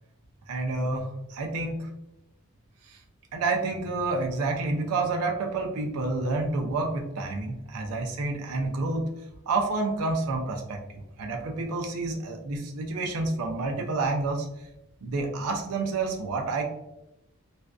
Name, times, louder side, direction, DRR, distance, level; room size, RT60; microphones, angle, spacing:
voice 1, 0.5-1.8 2.9-3.0 3.3-9.1 9.5-10.8 11.2-14.5 15.0-16.6, right 3 dB, 80° right, 1 dB, 0.4 m, -29 dB
2.5 x 2.2 x 2.3 m, 0.88 s
head